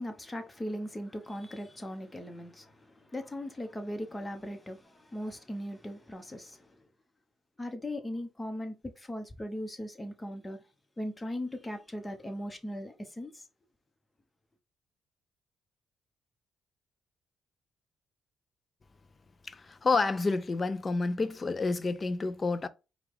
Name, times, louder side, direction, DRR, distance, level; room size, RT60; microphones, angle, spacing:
voice 1, 0.0-6.9 7.6-10.6 11.0-13.5, left 1 dB, 15° left, 1.0 m, -39 dB
voice 2, 19.4-22.7, left 3 dB, 30° left, 0.5 m, -29 dB
4.7 x 2.4 x 3.6 m
cardioid pair, 90°, 0 cm